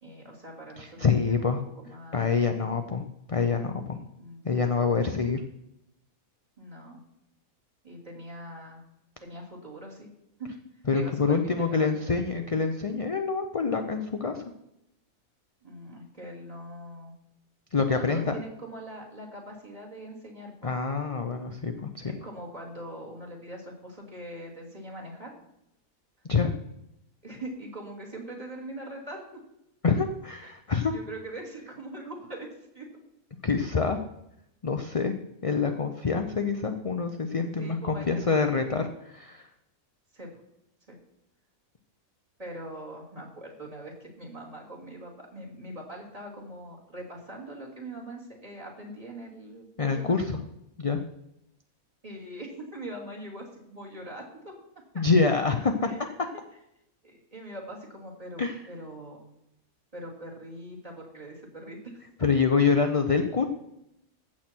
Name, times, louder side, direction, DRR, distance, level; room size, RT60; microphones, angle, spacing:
voice 1, 0.0-1.5 1.8-2.4 4.2-5.1 6.6-7.0 7.8-8.8 9.2-10.1 10.4-10.5 10.9-12.2 15.6-17.1 17.9-20.7 22.1-25.4 27.2-29.4 30.4-30.5 30.9-32.5 32.7-32.9 37.6-38.6 40.1-40.4 40.9-41.0 42.4-50.3 52.0-54.5 55.8-56.0 57.0-59.3 59.9-61.9, right 1 dB, 25° right, -1 dB, 2.9 m, -42 dB
voice 2, 0.8-1.6 2.1-3.0 3.3-4.0 4.4-5.4 10.9-14.4 17.7-18.3 20.6-22.1 26.3-26.5 29.8-30.9 33.4-34.0 34.6-35.1 35.4-39.5 49.8-50.4 50.8-51.0 55.0-55.9 58.4-58.6 62.2-63.5, left 5 dB, 40° left, 6 dB, 0.5 m, -26 dB
15.0 x 7.4 x 4.5 m, 0.83 s
omnidirectional pair, 1.5 m